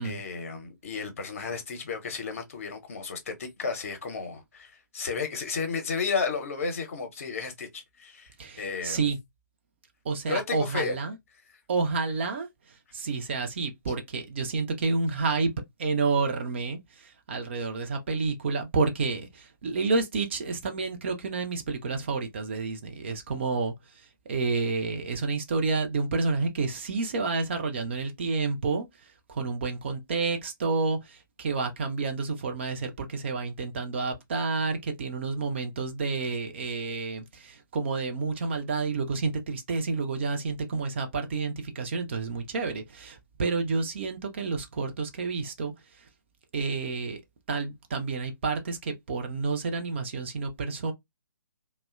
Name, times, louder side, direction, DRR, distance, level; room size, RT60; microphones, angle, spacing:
voice 1, 0.0-9.0 10.3-11.0, left 4 dB, 40° left, 0.7 m, -33 dB
voice 2, 8.4-9.2 10.0-11.2 11.7-15.5 15.8-46.0 46.5-47.2 47.5-50.9, right 4 dB, 35° right, 0.5 m, -30 dB
2.7 x 2.1 x 2.3 m
figure-of-eight pair, 135°, 11 cm